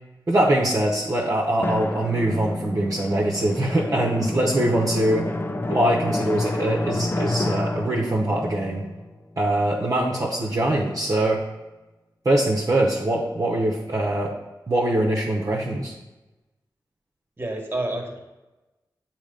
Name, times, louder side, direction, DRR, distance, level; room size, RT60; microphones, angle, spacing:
voice 1, 0.3-5.3 5.7-8.8 9.4-11.4 12.2-14.3 14.7-15.9, right 1 dB, 45° right, -3 dB, 0.9 m, -23 dB
Drum, 1.6-9.9, left 2 dB, 30° left, 0.5 m, -29 dB
voice 2, 17.4-18.2, right 1 dB, 25° right, 1 dB, 1.4 m, -29 dB
7.2 x 2.9 x 5.1 m, 1.1 s
cardioid pair, 45°, 8 cm